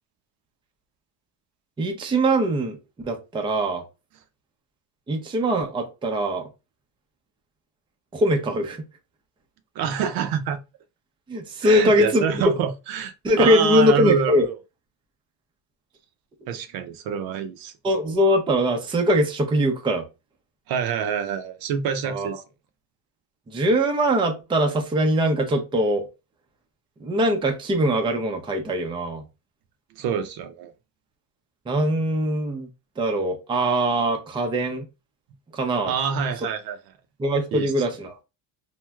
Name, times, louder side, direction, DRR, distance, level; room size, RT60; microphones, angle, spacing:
voice 1, 1.8-2.8 3.0-3.8 5.1-6.5 8.1-8.8 11.3-12.4 13.2-14.5 17.8-20.1 22.0-22.3 23.5-26.1 27.0-29.2 31.7-32.7 33.0-34.9 35.5-35.9 37.2-38.2, equal, 10° right, 0.5 m, -22 dB
voice 2, 9.8-10.6 11.6-14.5 16.5-17.7 20.7-22.4 30.0-30.7 35.9-36.8 37.5-37.7, right 7 dB, 60° right, 0.6 m, -26 dB
3.1 x 2.6 x 2.2 m
cardioid pair, 130°, 40 cm